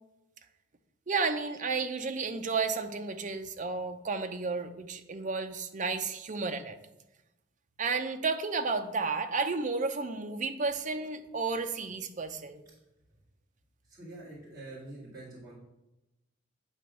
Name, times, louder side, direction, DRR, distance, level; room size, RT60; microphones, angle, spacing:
voice 1, 1.1-6.8 7.8-12.6, right 4 dB, 40° right, 7 dB, 0.5 m, -32 dB
voice 2, 13.9-15.5, right 2 dB, 20° right, -10 dB, 2.3 m, -46 dB
9.0 x 3.0 x 5.7 m, 0.95 s
head